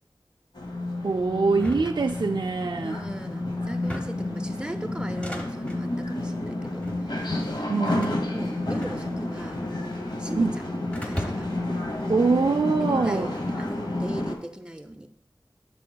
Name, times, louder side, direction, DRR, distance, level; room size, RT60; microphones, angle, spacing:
sound 1, 0.6-14.4, left 1 dB, 55° left, 1.0 m, -30 dB
voice 1, 1.0-3.0 7.7-8.3 10.4-10.6 12.1-13.3, right 4 dB, 55° right, 4 dB, 0.3 m, -24 dB
sound 2, 1.5-2.7 3.7-4.3 5.0-5.8 6.6-7.0 7.9-9.4 9.6-10.4 10.9-11.7, equal, 15° left, 0.9 m, -38 dB
voice 2, 2.8-6.8 7.5-8.0 8.3-10.6 11.0-11.5 12.8-15.1, right 1 dB, 10° right, 6 dB, 0.6 m, -39 dB
8.4 x 6.3 x 2.3 m, 0.69 s
wide cardioid pair, 50°, 9 cm